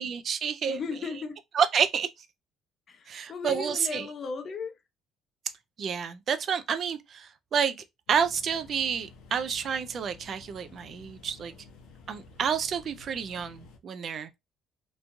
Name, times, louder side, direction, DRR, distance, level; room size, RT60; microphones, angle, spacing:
voice 1, 0.0-0.8 1.5-2.1 3.1-4.1 5.8-11.5 12.1-14.3, right 7 dB, 40° right, 0.4 m, -29 dB
voice 2, 0.7-1.4 2.9-4.7, left 5 dB, 35° left, 0.5 m, -36 dB
sound 1, 8.1-13.8, left 4 dB, 80° left, 0.7 m, -52 dB
3.0 x 2.3 x 2.6 m
cardioid pair, 145°, 0 cm